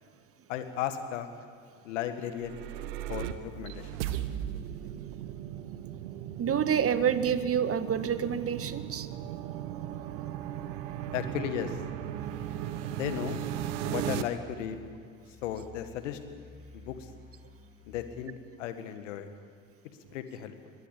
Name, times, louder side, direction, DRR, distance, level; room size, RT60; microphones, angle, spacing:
voice 1, 0.5-1.3 1.8-2.6 3.1-4.0 11.1-11.8 12.9-13.4 13.8-14.8 15.4-16.2 16.7-17.1 17.9-19.3 20.1-20.7, left 10 dB, 75° left, 9 dB, 1.9 m, -35 dB
sound 1, 2.2-14.2, right 11 dB, 70° right, 1.3 m, -37 dB
voice 2, 6.4-9.1, right 8 dB, 40° right, 12 dB, 1.5 m, -28 dB
sound 2, 13.3-18.2, left 3 dB, 25° left, 3.6 m, -53 dB
22.0 x 21.0 x 8.5 m, 2.2 s
hypercardioid pair, 55°, 37 cm